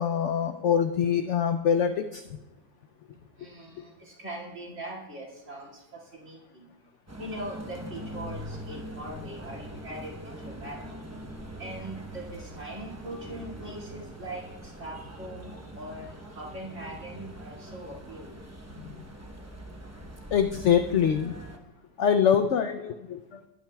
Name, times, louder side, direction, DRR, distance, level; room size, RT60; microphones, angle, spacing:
voice 1, 0.0-2.2 3.8-3.9 20.3-21.4 22.0-23.5, left 8 dB, 80° left, 8 dB, 0.6 m, -24 dB
voice 2, 3.4-6.7 7.2-10.8 11.6-18.4, right 1 dB, 45° right, -3 dB, 2.6 m, -41 dB
sound 1, 7.1-21.6, right 1 dB, 15° right, 0.5 m, -42 dB
20.0 x 8.8 x 2.3 m, 1.0 s
omnidirectional pair, 1.8 m